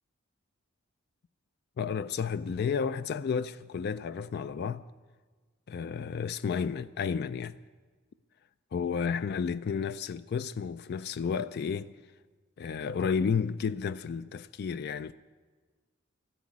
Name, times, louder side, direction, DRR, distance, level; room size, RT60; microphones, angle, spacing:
voice 1, 1.8-4.8 5.7-7.6 8.7-12.0 12.6-15.1, left 6 dB, 50° left, 0.3 m, -32 dB
13.5 x 10.0 x 8.4 m
head